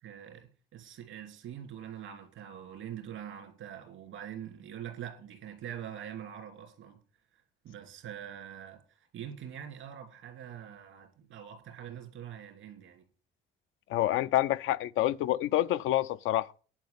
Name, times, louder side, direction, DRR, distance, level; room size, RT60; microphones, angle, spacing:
voice 1, 0.0-7.0 7.6-13.0, right 9 dB, 85° right, 2.8 m, -44 dB
voice 2, 13.9-16.5, left 14 dB, 85° left, 0.5 m, -27 dB
10.5 x 5.0 x 8.3 m
cardioid pair, 90°, 20 cm